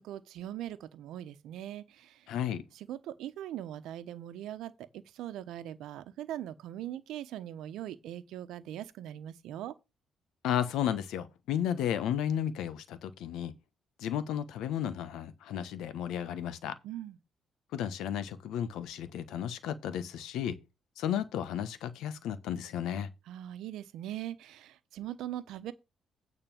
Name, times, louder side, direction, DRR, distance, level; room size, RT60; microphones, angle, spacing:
voice 1, 0.0-2.3 2.7-9.7 16.8-17.2 23.3-25.7, right 12 dB, 85° right, 1.0 m, -41 dB
voice 2, 2.3-2.6 10.4-13.5 14.0-16.8 17.7-20.6 21.0-23.1, left 9 dB, 85° left, 1.1 m, -33 dB
9.1 x 4.1 x 7.2 m
cardioid pair, 90°, 0 cm